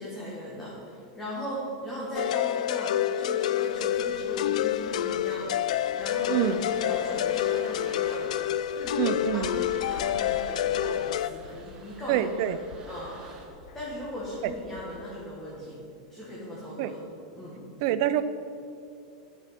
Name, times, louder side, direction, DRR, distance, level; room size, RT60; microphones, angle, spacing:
voice 1, 0.0-8.5 8.7-12.5 12.9-13.5 13.7-15.8 16.1-17.0 17.3-17.7, equal, 10° left, -7 dB, 1.7 m, -38 dB
sound 1, 2.2-11.3, left 11 dB, 80° left, 0.3 m, -28 dB
sound 2, 3.7-14.9, left 4 dB, 65° left, 1.0 m, -50 dB
sound 3, 3.7-13.5, right 3 dB, 25° right, 1.1 m, -49 dB
voice 2, 9.0-9.6 12.1-12.6 16.8-16.9 17.8-18.2, right 12 dB, 50° right, 12 dB, 0.5 m, -26 dB
9.8 x 6.1 x 6.0 m, 2.5 s
supercardioid pair, 160°, 4 cm